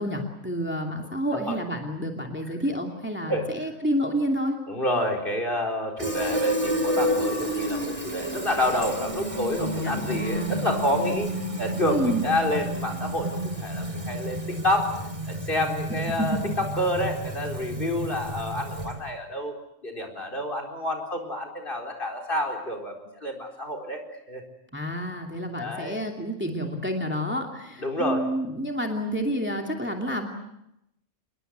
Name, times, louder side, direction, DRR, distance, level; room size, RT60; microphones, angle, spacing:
voice 1, 0.0-4.6 9.6-10.7 11.9-12.3 16.3-16.4 24.7-30.3, equal, 10° right, 2 dB, 2.7 m, -29 dB
voice 2, 4.7-11.3 11.6-19.5 19.8-24.4 25.6-26.0 27.8-28.3, left 1 dB, 40° left, 5 dB, 4.5 m, -29 dB
Fill (with liquid), 6.0-19.1, equal, 25° right, 3.1 m, -30 dB
27.5 x 21.5 x 8.1 m, 0.82 s
omnidirectional pair, 1.4 m